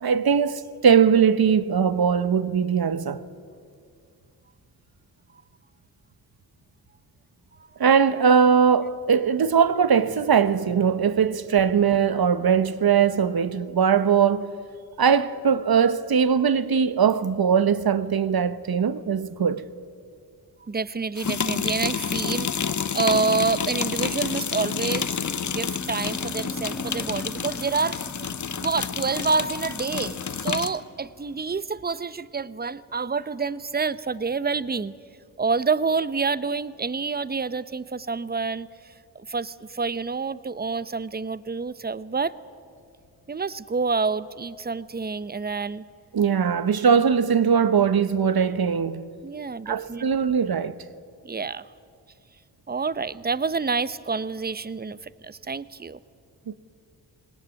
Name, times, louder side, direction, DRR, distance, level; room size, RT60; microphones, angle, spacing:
voice 1, 0.0-3.2 7.8-14.6 15.0-19.6 46.1-49.1 49.7-50.8 56.5-56.6, right 7 dB, 55° right, 1.1 m, -20 dB
voice 2, 20.6-22.5 22.9-28.3 28.6-34.9 35.4-38.7 39.1-42.3 43.3-45.8 49.2-50.1 51.2-51.6 52.7-56.0, right 4 dB, 20° right, 0.8 m, -28 dB
sound 1, 21.2-30.8, left 7 dB, 40° left, 0.9 m, -29 dB
sound 2, 22.0-30.8, equal, ahead, 2.2 m, -42 dB
21.0 x 18.5 x 9.5 m
supercardioid pair, 40°, 44 cm